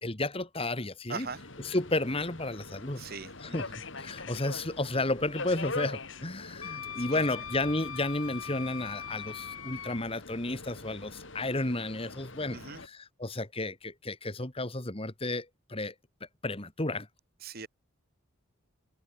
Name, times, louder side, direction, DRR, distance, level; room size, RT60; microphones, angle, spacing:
voice 1, 0.0-1.3 1.6-3.0 3.4-15.9 16.4-17.1, left 2 dB, 25° left, 2.1 m, -32 dB
voice 2, 1.1-1.4 3.0-3.8 7.1-7.3 12.5-12.8 17.4-17.7, right 5 dB, 45° right, 2.0 m, -41 dB
Subway metro underground, 1.2-12.9, left 3 dB, 65° left, 4.1 m, -44 dB
Wind instrument woodwind instrument, 6.6-10.0, left 8 dB, 80° left, 2.2 m, -41 dB
head